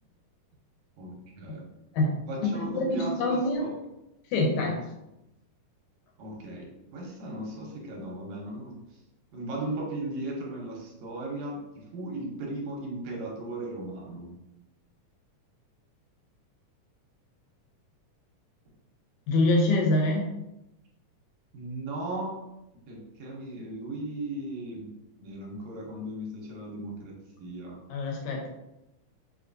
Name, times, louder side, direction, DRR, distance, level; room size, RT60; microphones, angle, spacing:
voice 1, 1.0-1.6 2.3-3.7 4.6-4.7 6.2-8.8 9.3-14.3 21.5-22.3 22.9-24.9 25.2-27.8, right 2 dB, 70° right, -1 dB, 1.9 m, -37 dB
voice 2, 1.9-3.7 4.3-4.8 19.3-20.3 27.9-28.5, left 2 dB, 75° left, 0 dB, 2.0 m, -25 dB
4.9 x 3.0 x 2.5 m, 0.90 s
omnidirectional pair, 3.7 m